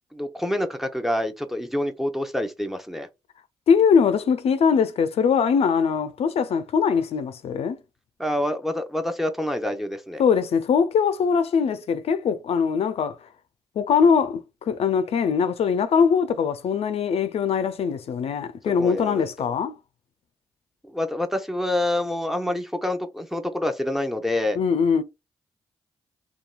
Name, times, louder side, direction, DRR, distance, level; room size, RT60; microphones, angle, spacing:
voice 1, 0.1-3.1 8.2-10.2 18.8-19.5 20.8-24.6, left 1 dB, ahead, 0.6 m, -27 dB
voice 2, 3.7-7.8 10.2-13.2 13.8-19.8 24.6-25.0, left 6 dB, 60° left, 0.4 m, -22 dB
2.9 x 2.2 x 2.3 m
hypercardioid pair, 40°, 11 cm